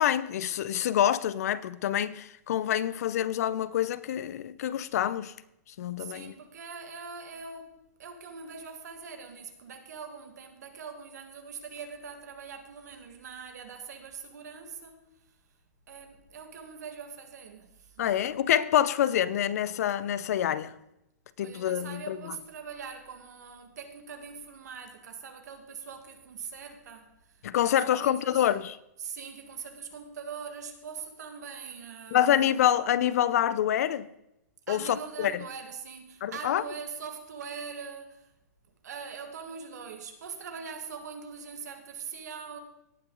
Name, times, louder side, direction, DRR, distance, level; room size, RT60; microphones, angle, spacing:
voice 1, 0.0-5.3 5.8-6.3 18.0-20.7 21.4-22.4 27.4-28.8 32.1-34.1 34.7-35.3 36.2-36.6, left 11 dB, 65° left, 0.5 m, -26 dB
voice 2, 6.0-15.4 15.9-18.2 21.4-28.5 29.0-32.4 34.7-38.3 38.8-42.6, right 6 dB, 80° right, 1.8 m, -42 dB
17.5 x 6.0 x 3.8 m
hypercardioid pair, 145°, 9 cm